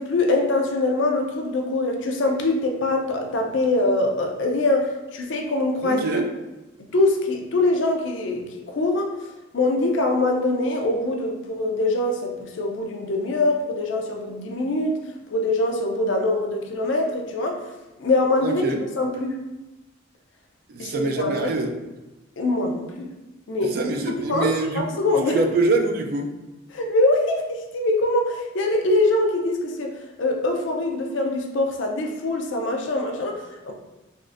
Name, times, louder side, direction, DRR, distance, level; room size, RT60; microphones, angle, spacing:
voice 1, 0.0-6.0 6.8-9.1 9.5-15.0 15.3-17.6 18.0-19.4 20.8-21.6 22.4-23.1 23.5-23.8 24.1-25.4 26.7-29.9 30.2-33.7, left 2 dB, 70° left, 2 dB, 0.5 m, -23 dB
voice 2, 5.8-6.3 18.4-18.8 20.7-21.7 23.7-25.0 25.3-26.3, right 2 dB, 50° right, 4 dB, 0.3 m, -24 dB
3.5 x 2.5 x 2.4 m, 1.0 s
head